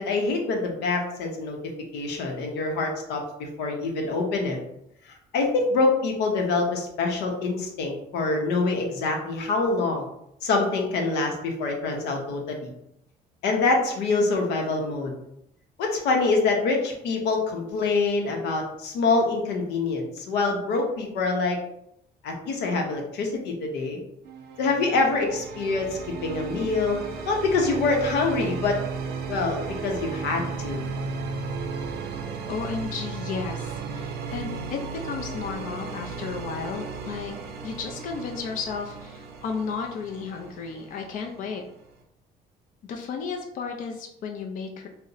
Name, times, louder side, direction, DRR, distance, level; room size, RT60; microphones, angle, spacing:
voice 1, 0.0-1.6 1.9-4.6 5.3-10.1 10.4-12.7 13.4-15.1 15.8-21.6 22.2-24.0 24.6-27.0 27.3-28.8 29.3-30.8, left 3 dB, 90° left, 1 dB, 0.7 m, -25 dB
sound 1, 24.2-42.0, right 5 dB, 70° right, 0.5 m, -35 dB
voice 2, 32.5-37.3 37.6-41.6 42.9-44.9, left 5 dB, 55° left, 2 dB, 0.4 m, -33 dB
2.6 x 2.0 x 3.8 m, 0.78 s
cardioid pair, 110°, 17 cm